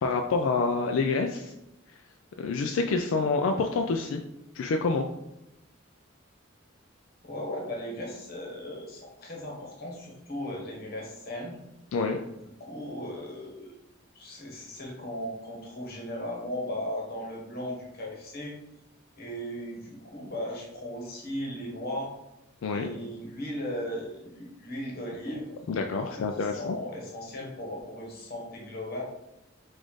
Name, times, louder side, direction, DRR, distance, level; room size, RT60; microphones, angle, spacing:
voice 1, 0.0-1.5 2.4-4.2 4.5-5.1 11.9-12.2 22.6-22.9 25.7-26.8, left 4 dB, 80° left, 4 dB, 0.3 m, -27 dB
voice 2, 7.2-11.6 12.6-13.7 14.1-18.6 19.2-22.1 22.7-25.5 26.0-29.0, left 1 dB, 50° left, -1 dB, 1.2 m, -37 dB
4.0 x 2.5 x 4.7 m, 0.91 s
head